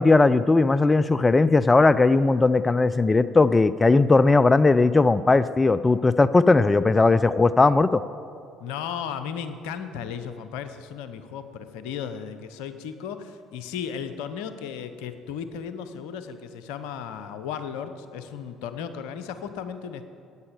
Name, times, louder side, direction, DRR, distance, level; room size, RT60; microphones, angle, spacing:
voice 1, 0.0-8.0, left 3 dB, 20° left, 14 dB, 0.4 m, -18 dB
voice 2, 8.6-20.0, left 7 dB, 70° left, 10 dB, 0.7 m, -35 dB
9.7 x 8.8 x 8.8 m, 2.5 s
hypercardioid pair, 55°, 0 cm